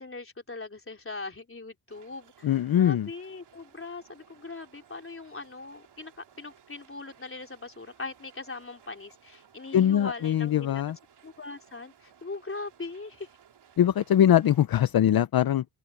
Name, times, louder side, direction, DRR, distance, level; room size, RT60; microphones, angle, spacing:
voice 1, 0.0-10.8 11.2-13.3, left 3 dB, 30° left, 3.8 m, -40 dB
Conveyor Belt, 1.9-14.7, right 8 dB, 85° right, 3.0 m, -59 dB
voice 2, 2.4-3.1 9.7-11.0 13.8-15.6, left 10 dB, 65° left, 0.7 m, -22 dB
cardioid pair, 60°, 39 cm